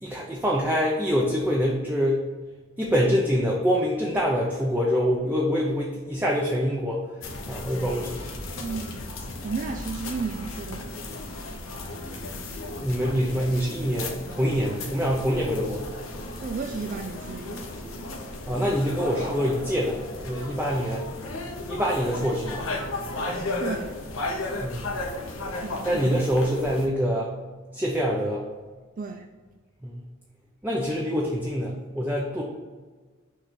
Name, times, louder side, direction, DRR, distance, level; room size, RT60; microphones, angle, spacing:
voice 1, 0.0-2.2 2.8-7.0 7.5-8.6 12.8-15.9 18.5-20.0 20.2-21.1 21.7-22.6 24.6-25.0 25.8-27.3 27.7-28.5 29.8-30.0 30.6-32.4, equal, 10° right, -3 dB, 0.7 m, -25 dB
sound 1, 7.2-26.9, left 2 dB, 75° left, 1.0 m, -35 dB
voice 2, 8.6-9.1 9.4-11.1 16.4-17.6 23.6-23.9 25.6-26.2 29.0-29.2, right 4 dB, 40° right, 4 dB, 0.4 m, -33 dB
6.4 x 3.3 x 5.9 m, 1.4 s
head